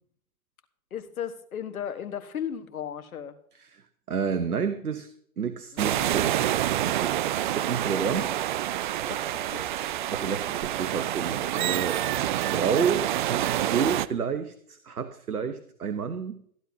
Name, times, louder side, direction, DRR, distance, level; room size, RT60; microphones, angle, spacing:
voice 1, 0.9-3.4 5.9-6.2 7.8-7.9 8.2-8.3 9.0-9.2 9.5-9.6, left 9 dB, 70° left, 10 dB, 1.5 m, -35 dB
voice 2, 3.5-5.1 5.4-6.3 6.8-8.3 10.1-12.0 12.3-16.4, right 6 dB, 85° right, 11 dB, 1.0 m, -30 dB
sound 1, 5.8-14.1, right 12 dB, 35° right, 0.4 m, -27 dB
15.0 x 11.5 x 2.8 m, 0.64 s
figure-of-eight pair, 110°, 43 cm